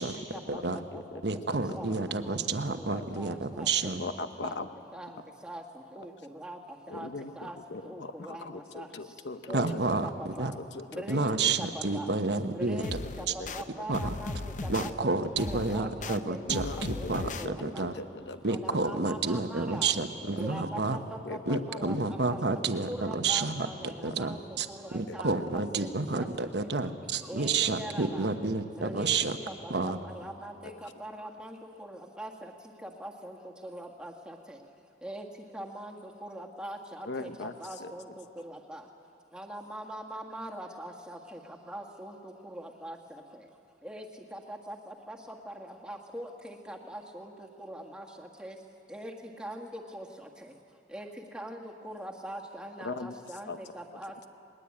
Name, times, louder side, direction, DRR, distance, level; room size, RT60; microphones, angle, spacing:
voice 1, 0.0-0.6 0.9-1.2 1.5-2.4 2.8-3.9 4.4-5.6 5.9-6.6 6.9-7.1 7.4-7.6 7.8-8.9 9.5-10.6 10.9-11.3 11.6-12.2 12.5-17.9 18.5-19.9 20.3-25.9 26.2-26.5 27.2-28.3 28.8-29.2 29.5-32.5 32.8-33.4 33.6-34.6 35.0-35.3 35.5-38.8 39.3-43.4 43.8-48.6 48.9-50.5 50.9-54.3, right 1 dB, 5° right, 0 dB, 1.7 m, -42 dB
voice 2, 0.5-1.0 1.5-2.0 2.9-3.0 4.0-4.7 6.9-9.8 10.5-11.0 11.4-11.5 13.4-13.5 16.5-18.8 21.2-21.8 24.1-24.2 25.1-25.2 37.0-37.5 37.8-37.9 52.8-53.2 53.5-53.6, left 3 dB, 80° left, 9 dB, 0.9 m, -40 dB
voice 3, 1.2-4.0 9.5-10.5 11.1-12.8 13.9-14.1 14.7-17.9 18.4-21.0 21.5-23.7 24.0-24.7 24.9-29.4 29.7-30.0, right 3 dB, 75° right, 8 dB, 1.1 m, -30 dB
sound 1, 12.8-13.6 13.9-14.9 15.4-16.2 16.5-17.5, left 2 dB, 45° left, 0.7 m, -36 dB
20.5 x 20.5 x 8.6 m, 2.4 s
head